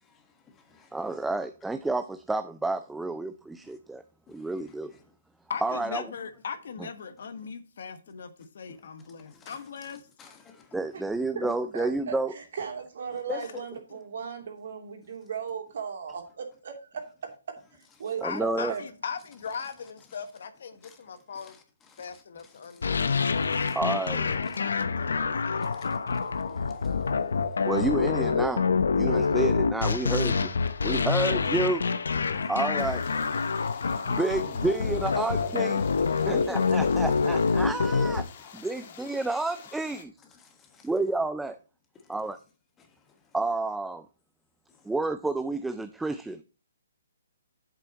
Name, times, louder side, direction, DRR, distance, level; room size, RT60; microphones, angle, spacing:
voice 1, 0.1-1.0 3.6-3.7 4.3-4.4 9.2-9.6 10.2-10.5 11.4-11.5 13.3-13.4 20.8-21.0 21.4-21.6 21.9-22.1 23.5-23.8 25.6-27.0 27.3-27.4 27.6-27.7 36.3-36.6 38.4-38.5 40.4-40.9 42.0-42.1 42.8-42.9, left 6 dB, 15° left, 1.5 m, -43 dB
voice 2, 0.9-4.0 4.3-4.9 5.6-6.0 10.7-12.3 18.2-18.7 23.7-24.3 27.6-28.6 28.9-30.5 30.8-31.8 32.5-33.0 34.1-35.8 36.3-38.3 38.5-40.1 40.8-41.6 42.1-42.4 43.3-44.1 44.9-46.4, right 2 dB, 5° right, 0.4 m, -30 dB
voice 3, 5.5-10.0 18.2-21.6 22.0-23.0 24.3-25.8, left 6 dB, 60° left, 1.3 m, -39 dB
voice 4, 11.7-18.8, right 7 dB, 60° right, 2.8 m, -37 dB
sound 1, 22.8-38.2, left 5 dB, 75° left, 0.9 m, -26 dB
sound 2, 32.8-40.0, left 7 dB, 40° left, 1.7 m, -48 dB
8.1 x 7.5 x 4.1 m
hypercardioid pair, 150°, 0 cm